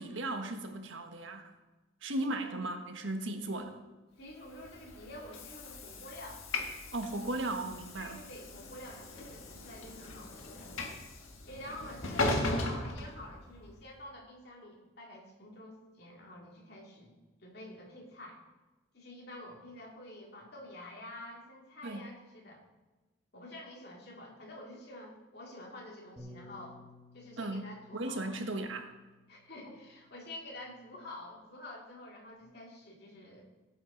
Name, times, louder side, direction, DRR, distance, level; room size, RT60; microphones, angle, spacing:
voice 1, 0.0-1.5 2.0-3.8 6.9-8.2 21.8-22.1 27.4-27.7 27.9-28.9, right 2 dB, 75° right, 5 dB, 1.3 m, -36 dB
voice 2, 4.2-6.4 8.0-10.7 11.5-17.1 17.4-18.4 18.9-22.6 23.3-26.8 27.1-28.4 29.3-33.5, left 1 dB, 50° left, -1 dB, 2.7 m, -48 dB
Train / Sliding door, 4.5-13.8, left 2 dB, 90° left, 1.6 m, -38 dB
Bass guitar, 26.2-30.7 31.4-32.4, left 1 dB, ahead, 1.5 m, -57 dB
16.5 x 8.9 x 4.0 m, 1.2 s
head